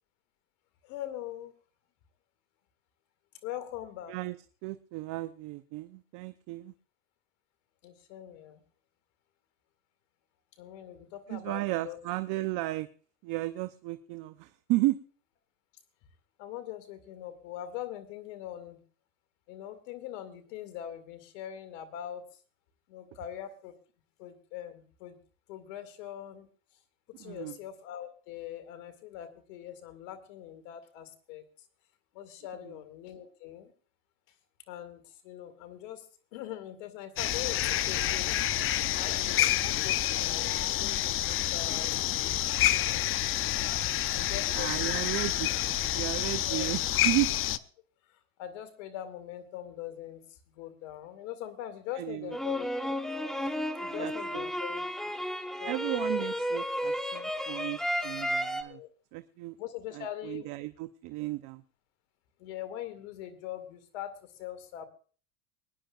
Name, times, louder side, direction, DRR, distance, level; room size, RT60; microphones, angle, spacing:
voice 1, 0.8-1.5 3.4-4.1 7.8-8.6 10.6-12.0 16.4-18.8 19.5-22.2 22.9-23.8 24.2-25.2 25.5-26.5 27.2-31.4 32.1-33.7 34.7-36.1 36.3-38.4 38.9-42.6 44.1-44.9 46.3-46.6 48.1-53.0 53.4-53.5 53.8-55.3 55.6-55.8 56.2-56.3 58.6-58.9 59.6-60.5 62.4-64.9, left 11 dB, 65° left, 11 dB, 2.3 m, -42 dB
voice 2, 4.6-6.7 11.3-12.9 13.2-15.0 27.1-27.6 32.6-32.8 44.5-45.5 45.9-47.3 51.9-52.4 54.0-54.4 55.6-58.8 59.1-59.6 59.9-61.6, right 18 dB, 50° right, 11 dB, 0.7 m, -34 dB
sound 1, 37.2-47.6, left 13 dB, 30° left, 0.6 m, -28 dB
sound 2, 52.3-58.6, equal, ahead, 1.2 m, -33 dB
24.0 x 10.5 x 2.4 m, 0.39 s
supercardioid pair, 110°, 41 cm